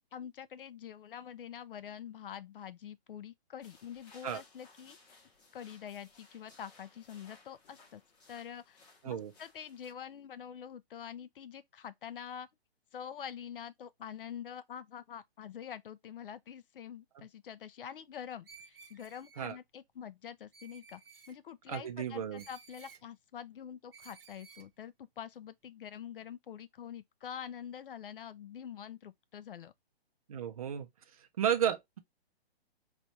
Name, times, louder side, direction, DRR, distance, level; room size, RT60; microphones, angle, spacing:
voice 1, 0.1-5.0 5.5-8.0 8.3-8.8 9.0-12.5 12.9-21.0 21.3-29.7, left 9 dB, 60° left, 0.4 m, -46 dB
sound 1, 3.6-9.9, left 3 dB, 40° left, 2.0 m, -61 dB
Screech, 18.4-19.5 20.5-21.4 22.4-23.0 23.9-24.7, right 5 dB, 65° right, 0.9 m, -56 dB
voice 2, 21.7-22.4 30.3-30.9 31.4-32.0, right 9 dB, 35° right, 0.5 m, -33 dB
4.2 x 2.4 x 2.9 m
hypercardioid pair, 160°, 31 cm